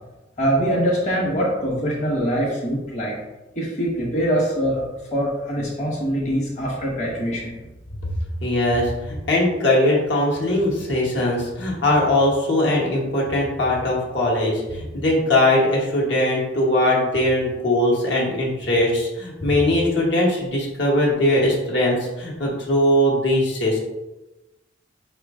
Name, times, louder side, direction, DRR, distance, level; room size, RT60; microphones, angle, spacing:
voice 1, 0.4-3.1 3.5-7.6, equal, 40° left, -4 dB, 1.1 m, -23 dB
voice 2, 8.4-23.8, left 1 dB, 70° left, -4 dB, 1.2 m, -20 dB
4.8 x 3.1 x 3.6 m, 1.0 s
head